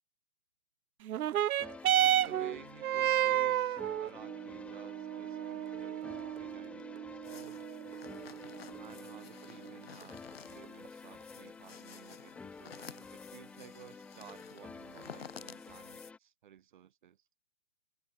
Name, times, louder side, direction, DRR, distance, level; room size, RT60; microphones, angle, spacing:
sound 1, 1.0-10.0 10.9-11.0, right 11 dB, 80° right, 0.5 m, -32 dB
sound 2, 1.6-16.2, left 4 dB, 5° left, 2.1 m, -50 dB
voice 1, 2.0-7.6 8.8-17.2, right 10 dB, 35° right, 7.8 m, -55 dB
sound 3, 7.2-16.1, left 8 dB, 45° left, 5.9 m, -53 dB
hypercardioid pair, 170°, 42 cm